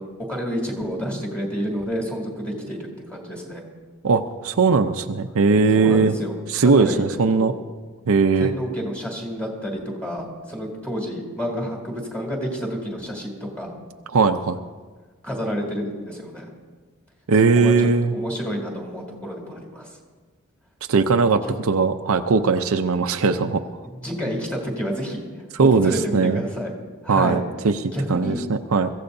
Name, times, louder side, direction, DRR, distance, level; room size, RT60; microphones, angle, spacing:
voice 1, 0.0-3.6 5.7-6.4 6.6-7.0 7.3-7.5 8.4-13.8 15.2-16.5 17.5-19.9 21.4-21.5 23.8-25.3 25.6-26.7 27.0-27.4 27.9-28.4, equal, 5° left, 0 dB, 2.8 m, -29 dB
voice 2, 4.0-6.1 6.5-7.5 8.1-8.5 14.1-14.6 17.3-18.1 20.9-23.6 25.6-26.4 27.1-27.8 28.1-28.9, right 4 dB, 70° right, 7 dB, 0.6 m, -19 dB
23.0 x 15.0 x 2.7 m, 1.4 s
head